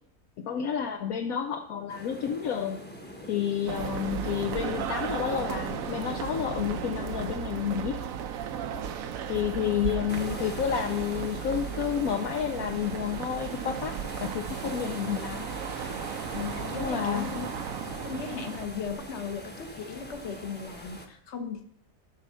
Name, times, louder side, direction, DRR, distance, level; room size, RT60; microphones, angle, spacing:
voice 1, 0.4-2.8 3.3-8.0 9.3-13.9 14.2-15.5 16.8-17.3, left 8 dB, 70° left, 4 dB, 1.1 m, -30 dB
sound 1, 1.9-7.3 10.1-21.1, equal, 10° left, 0.9 m, -43 dB
sound 2, 3.7-18.7, right 8 dB, 65° right, 1.0 m, -35 dB
voice 2, 9.5-10.0 10.3-10.5 16.3-17.5 18.0-21.6, left 6 dB, 50° left, 6 dB, 1.3 m, -37 dB
12.0 x 4.2 x 6.2 m, 0.66 s
omnidirectional pair, 1.7 m